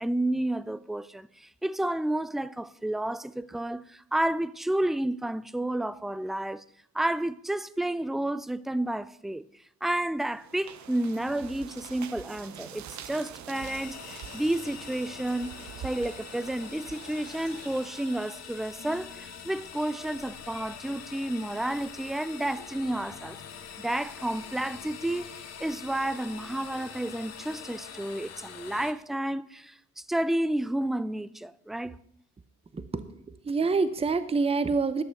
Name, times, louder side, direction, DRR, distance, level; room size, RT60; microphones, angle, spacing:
voice 1, 0.0-6.6 6.9-9.5 9.8-15.5 15.8-23.4 23.8-32.0, right 1 dB, ahead, 0.3 m, -31 dB
sound 1, 10.3-18.7, right 9 dB, 65° right, 1.0 m, -45 dB
sound 2, 13.5-28.9, left 7 dB, 60° left, 1.4 m, -44 dB
voice 2, 32.7-35.0, right 4 dB, 20° right, 0.7 m, -27 dB
11.5 x 6.6 x 6.4 m
cardioid pair, 90°, 30 cm